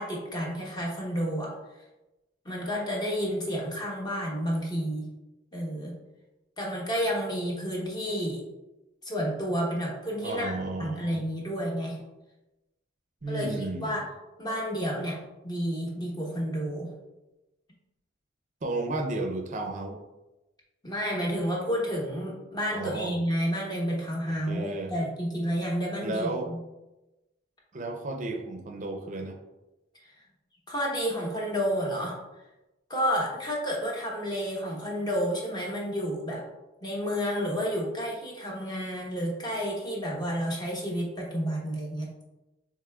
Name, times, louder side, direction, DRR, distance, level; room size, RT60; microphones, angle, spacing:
voice 1, 0.0-1.5 2.4-5.1 5.5-6.0 6.6-8.4 9.0-10.5 10.8-12.0 13.3-13.5 13.8-14.0 14.4-15.2 15.4-16.9 20.8-26.6 30.7-32.2 32.9-36.4 36.8-42.1, equal, 20° left, -2 dB, 1.0 m, -30 dB
voice 2, 10.2-11.2 13.2-14.0 18.6-20.0 22.7-23.1 24.3-24.9 26.0-26.5 27.7-29.4, right 2 dB, 40° right, 3 dB, 0.5 m, -33 dB
6.7 x 3.2 x 2.3 m, 1.0 s
head